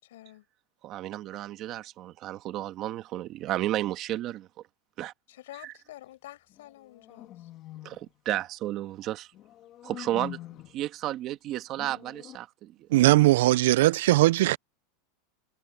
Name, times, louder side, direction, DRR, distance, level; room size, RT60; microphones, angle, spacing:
voice 1, 0.0-0.4 5.3-7.5, left 15 dB, 80° left, 6.2 m, -48 dB
voice 2, 0.8-4.5 5.0-5.1 5.6-5.7 7.8-9.3 9.8-10.4 10.7-12.9, right 14 dB, 35° right, 1.5 m, -33 dB
sound 1, 6.5-8.1 9.3-10.8 11.7-12.4, left 13 dB, 35° left, 1.4 m, -45 dB
voice 3, 12.9-14.6, right 17 dB, 70° right, 0.3 m, -20 dB
supercardioid pair, 160°, 0 cm